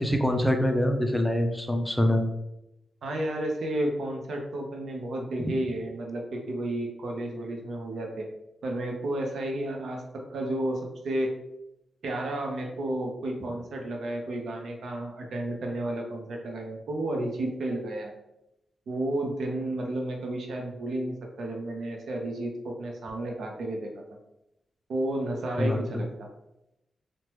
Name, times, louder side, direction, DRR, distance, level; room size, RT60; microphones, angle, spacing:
voice 1, 0.0-2.3 5.4-5.5 25.6-25.8, left 1 dB, 5° left, 4 dB, 0.4 m, -24 dB
voice 2, 3.0-8.3 8.6-11.3 12.0-18.1 18.9-24.2 24.9-26.3, right 1 dB, 80° right, 1 dB, 0.6 m, -32 dB
3.2 x 2.1 x 2.9 m, 0.87 s
wide cardioid pair, 110°, 0 cm